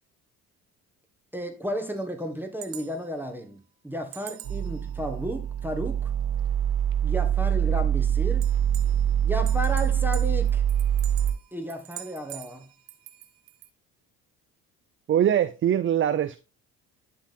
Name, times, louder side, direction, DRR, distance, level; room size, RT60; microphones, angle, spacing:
voice 1, 1.3-6.1 7.0-8.5 9.2-10.6 11.5-12.7, equal, 5° right, 1.6 m, -33 dB
sound 1, 1.9-3.4 4.1-4.9 5.6-5.7 6.4-6.5 6.9-7.0 8.4-9.2 9.5-13.7, right 13 dB, 70° right, 0.9 m, -45 dB
sound 2, 4.4-11.3, right 9 dB, 50° right, 1.9 m, -24 dB
voice 2, 15.1-16.4, right 10 dB, 30° right, 0.5 m, -22 dB
11.5 x 3.8 x 3.5 m
hypercardioid pair, 55°, 43 cm